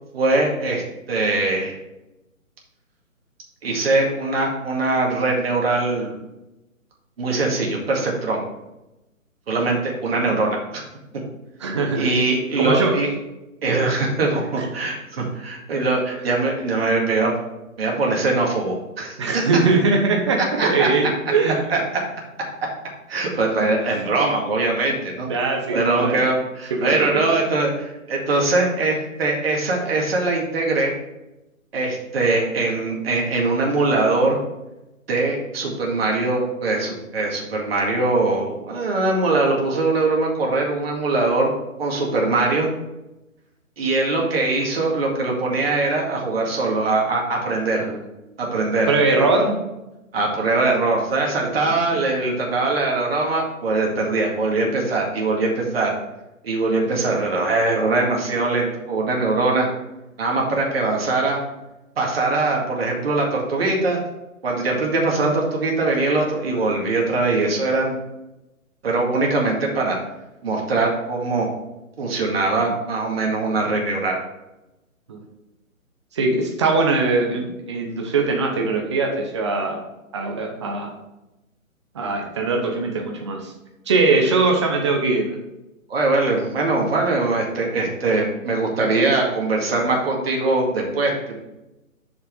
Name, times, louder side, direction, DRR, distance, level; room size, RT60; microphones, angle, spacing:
voice 1, 0.1-0.8 1.1-1.7 3.6-6.1 7.2-8.4 9.5-10.8 11.9-13.1 13.6-17.4 17.8-19.4 20.6-20.9 21.7-21.8 23.1-25.3 25.7-30.9 31.7-34.4 35.1-41.5 41.8-42.7 43.8-47.8 48.4-48.9 50.1-55.9 56.4-59.7 60.2-61.4 62.0-64.0 64.4-68.0 68.8-70.0 70.4-71.5 72.0-74.2 85.9-91.3, right 3 dB, 45° right, -1 dB, 2.1 m, -22 dB
voice 2, 11.6-12.1 12.6-13.0 14.6-14.7 19.2-21.6 23.9-24.0 25.3-26.2 26.7-27.3 47.8-48.0 48.9-49.6 75.1-75.2 76.1-79.8 80.1-80.9 81.9-83.5 83.9-85.4, right 3 dB, 20° right, 2 dB, 0.8 m, -21 dB
6.7 x 5.8 x 4.6 m, 0.96 s
hypercardioid pair, 155°, 42 cm